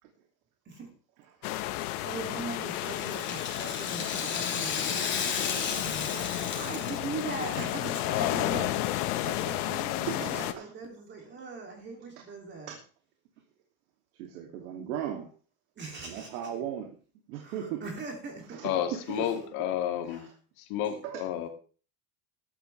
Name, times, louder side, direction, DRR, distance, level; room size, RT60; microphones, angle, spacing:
sound 1, 1.4-10.5, left 15 dB, 85° left, 1.5 m, -32 dB
voice 1, 2.0-12.7 15.8-16.3 17.4-18.7 19.1-19.3 20.0-20.3 20.8-21.0, right 4 dB, 25° right, 2.9 m, -40 dB
Rattle (instrument), 2.6-7.9 8.2-8.3 9.1-9.2, left 6 dB, 25° left, 3.3 m, -34 dB
voice 2, 8.1-8.6 18.6-20.3 20.7-21.5, left 10 dB, 55° left, 2.6 m, -31 dB
voice 3, 10.1-10.7 12.7-12.8 14.1-15.3 16.0-17.0 17.3-17.8 18.5-19.3 20.3-20.4 21.0-21.2, right 9 dB, 80° right, 2.8 m, -37 dB
15.0 x 13.0 x 3.4 m
cardioid pair, 160°, 43 cm